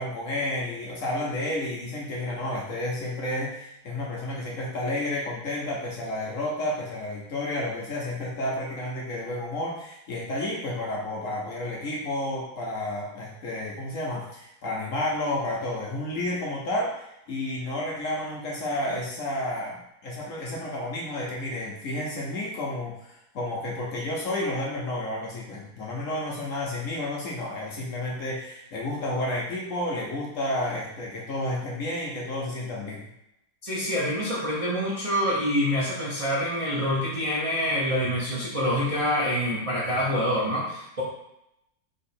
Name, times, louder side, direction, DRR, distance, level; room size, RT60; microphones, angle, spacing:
voice 1, 0.0-33.1, left 1 dB, 55° left, -3 dB, 1.0 m, -31 dB
voice 2, 33.6-41.0, equal, 35° right, -7 dB, 0.5 m, -26 dB
3.6 x 3.0 x 4.3 m, 0.84 s
omnidirectional pair, 1.9 m